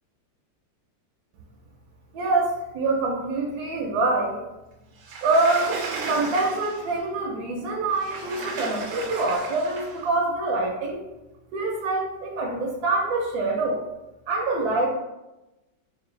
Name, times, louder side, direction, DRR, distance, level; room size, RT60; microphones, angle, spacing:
voice 1, 2.1-4.4 5.2-11.0 11.5-13.8 14.3-14.9, right 2 dB, 70° right, -1 dB, 1.0 m, -25 dB
Sliding door, 5.0-7.0 7.9-10.1, right 4 dB, 85° right, 1.4 m, -34 dB
4.2 x 2.4 x 3.1 m, 0.99 s
omnidirectional pair, 2.0 m